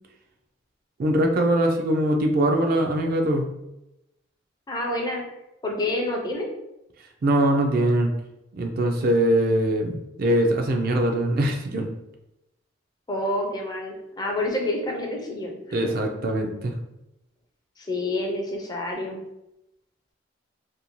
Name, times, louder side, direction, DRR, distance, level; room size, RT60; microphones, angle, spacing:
voice 1, 1.0-3.5 7.2-8.1 8.5-11.9 15.7-16.7, right 1 dB, 50° right, 3 dB, 0.3 m, -22 dB
voice 2, 4.7-5.2 5.6-6.5 13.1-15.9 17.8-19.2, left 1 dB, 20° left, 0 dB, 0.4 m, -28 dB
2.5 x 2.2 x 2.9 m, 0.90 s
head